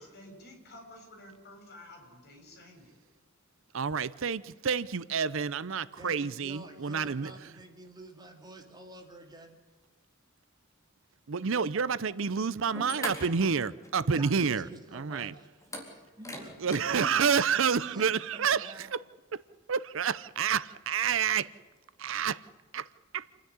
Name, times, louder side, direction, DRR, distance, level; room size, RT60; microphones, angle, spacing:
voice 1, 0.0-3.0, left 1 dB, 50° left, 6.6 m, -51 dB
voice 2, 3.7-7.3 11.3-15.3 16.6-19.0 19.3-19.4 19.7-21.5 22.0-22.4 22.7-22.9 23.1-23.2, right 6 dB, 65° right, 0.6 m, -29 dB
voice 3, 6.0-9.6 13.5-13.6 14.0-15.5 15.9-16.5 17.0-17.3 17.7-18.9, right 2 dB, 20° right, 2.8 m, -48 dB
sound 1, 12.7-14.1 14.4-14.5 15.6-17.4, left 1 dB, 15° left, 4.2 m, -41 dB
28.5 x 10.5 x 9.9 m
head